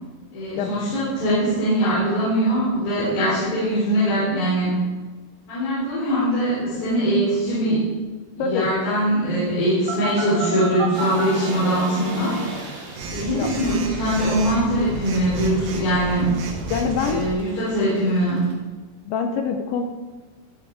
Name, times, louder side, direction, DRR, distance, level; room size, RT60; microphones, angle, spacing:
voice 1, 0.3-4.8 5.5-7.8 8.4-12.3 13.1-16.3 17.1-18.4, right 1 dB, 55° left, -10 dB, 5.7 m, -22 dB
voice 2, 8.4-8.7 13.3-13.5 16.7-17.3 19.1-19.8, left 6 dB, 80° left, 5 dB, 2.8 m, -24 dB
Telephone, 9.9-11.3 13.0-17.3, right 3 dB, 75° right, 4.0 m, -30 dB
sound 1, 10.9-18.5, right 2 dB, 40° right, 3.6 m, -38 dB
19.0 x 7.5 x 4.8 m, 1.3 s
omnidirectional pair, 5.9 m